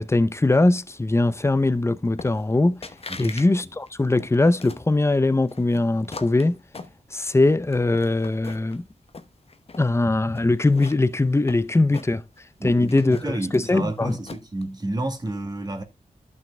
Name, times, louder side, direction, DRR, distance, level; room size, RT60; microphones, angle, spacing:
voice 1, 0.0-2.9 3.2-6.6 7.1-8.9 9.8-12.2 12.6-14.2, left 2 dB, 20° left, 0.6 m, -21 dB
sound 1, 2.2-2.6 2.8-3.5 3.8-4.9 5.5-7.4 7.7-8.8 9.1-9.9 10.3-12.4 12.7-14.6, left 4 dB, 45° left, 0.9 m, -41 dB
voice 2, 12.6-15.8, right 1 dB, 30° right, 1.9 m, -30 dB
14.0 x 6.0 x 2.2 m
wide cardioid pair, 90°, 14 cm